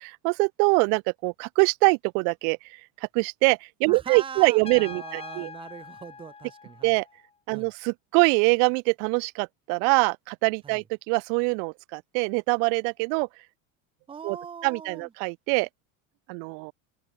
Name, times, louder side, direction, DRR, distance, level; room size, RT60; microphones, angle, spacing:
voice 1, 0.2-5.5 6.8-7.1 7.5-13.3 14.2-14.4 14.6-15.7 16.3-16.7, right 40 dB or more, 50° right, 0.5 m, -24 dB
voice 2, 3.9-6.9 7.5-7.7 10.6-10.8 14.1-15.1, right 7 dB, 10° right, 1.0 m, -41 dB
Trumpet, 4.6-7.3, left 5 dB, 15° left, 2.3 m, -43 dB
open air
cardioid pair, 160°, 42 cm